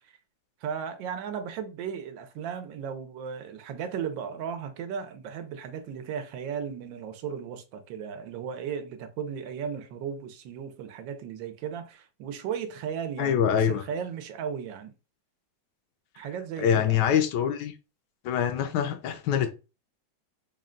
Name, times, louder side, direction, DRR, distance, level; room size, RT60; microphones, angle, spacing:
voice 1, 0.6-14.9 16.2-17.0, right 7 dB, 85° right, 1.4 m, -35 dB
voice 2, 13.2-13.8 16.6-17.7 18.2-19.5, left 9 dB, 75° left, 1.1 m, -24 dB
4.0 x 2.1 x 3.6 m
omnidirectional pair, 2.0 m